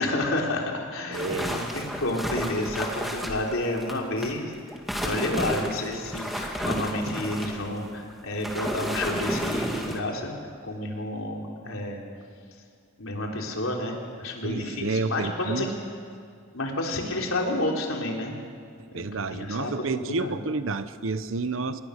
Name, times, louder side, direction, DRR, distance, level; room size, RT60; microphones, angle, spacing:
voice 1, 0.0-4.5 5.0-10.3 10.6-12.0 13.0-15.7 16.5-18.4 18.9-19.0 19.3-19.7 20.0-20.4, left 1 dB, 75° left, 0 dB, 3.6 m, -30 dB
sound 1, 1.1-4.3 4.7-10.0, equal, ahead, 2.3 m, -32 dB
voice 2, 1.1-1.7 14.4-15.7 18.9-21.8, right 3 dB, 70° right, 12 dB, 0.8 m, -30 dB
27.0 x 20.0 x 6.6 m, 2.2 s
head